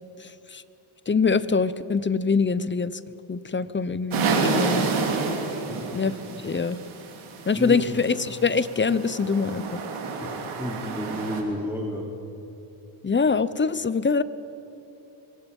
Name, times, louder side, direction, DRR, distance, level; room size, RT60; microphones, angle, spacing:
voice 1, 1.1-3.0 3.3-4.9 5.9-6.8 7.5-9.6 13.0-14.2, left 5 dB, 25° left, 15 dB, 0.8 m, -24 dB
sound 1, 4.1-11.4, right 4 dB, 85° right, 3.7 m, -29 dB
voice 2, 5.5-5.9 7.6-8.0 10.2-12.1, equal, 5° right, -2 dB, 3.2 m, -32 dB
27.0 x 24.0 x 5.5 m, 2.9 s
cardioid pair, 95°, 48 cm